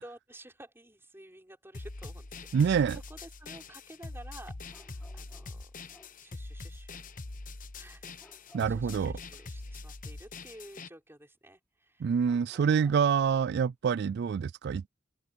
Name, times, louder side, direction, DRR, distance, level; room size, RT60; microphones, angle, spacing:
voice 1, 0.0-5.7 6.2-7.0 7.8-12.1 12.5-13.0, right 1 dB, 15° right, 4.8 m, -52 dB
sound 1, 1.7-10.9, left 3 dB, 45° left, 1.1 m, -43 dB
voice 2, 2.5-3.0 8.5-9.1 12.0-14.9, right 6 dB, 60° right, 0.3 m, -26 dB
sound 2, 4.7-6.2 8.2-9.2 12.2-13.2, left 1 dB, 10° left, 3.3 m, -60 dB
open air
head